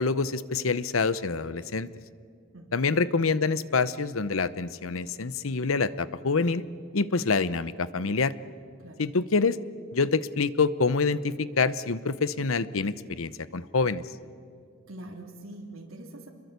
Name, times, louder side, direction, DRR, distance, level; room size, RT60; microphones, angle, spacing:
voice 1, 0.0-1.9 2.7-6.6 6.9-8.3 9.0-9.6 9.9-14.0, left 4 dB, 75° left, 16 dB, 0.8 m, -26 dB
voice 2, 14.9-16.3, right 1 dB, 80° right, 0 dB, 3.1 m, -43 dB
27.0 x 22.0 x 8.2 m, 2.2 s
head